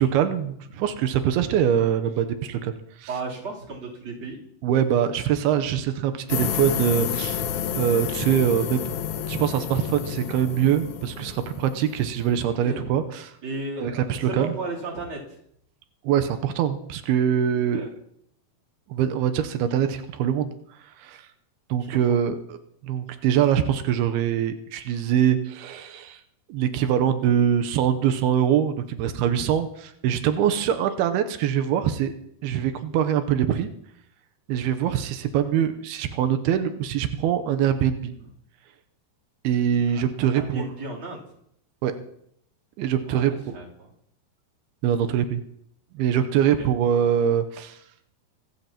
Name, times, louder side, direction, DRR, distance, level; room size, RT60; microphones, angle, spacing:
voice 1, 0.0-3.1 4.6-7.4 7.7-8.8 9.3-13.3 13.8-14.5 16.0-17.9 18.9-20.5 21.0-21.3 21.7-22.6 22.8-26.2 26.5-32.1 32.4-33.7 34.5-38.1 39.4-40.7 41.8-41.9 42.8-43.5 44.8-45.4 45.9-47.8, right 9 dB, 90° right, 8 dB, 2.7 m, -23 dB
voice 2, 3.1-4.4 12.5-12.9 13.4-15.2 17.7-17.9 39.9-41.2 43.1-43.9 46.6-46.7, right 2 dB, 35° right, -3 dB, 3.8 m, -34 dB
sound 1, 6.3-12.4, left 9 dB, 75° left, 1.7 m, -30 dB
24.5 x 14.5 x 2.9 m, 0.71 s
omnidirectional pair, 4.5 m